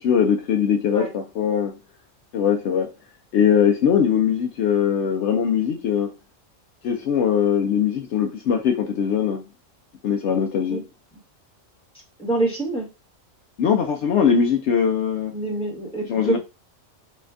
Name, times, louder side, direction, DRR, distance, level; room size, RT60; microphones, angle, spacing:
voice 1, 0.0-1.7 2.3-2.9 3.3-6.1 6.8-9.4 10.0-10.9 13.6-15.3 16.1-16.4, left 7 dB, 70° left, 0.8 m, -21 dB
voice 2, 12.2-12.9 15.3-16.4, right 2 dB, 5° left, 1.6 m, -26 dB
4.1 x 3.2 x 2.5 m
omnidirectional pair, 1.3 m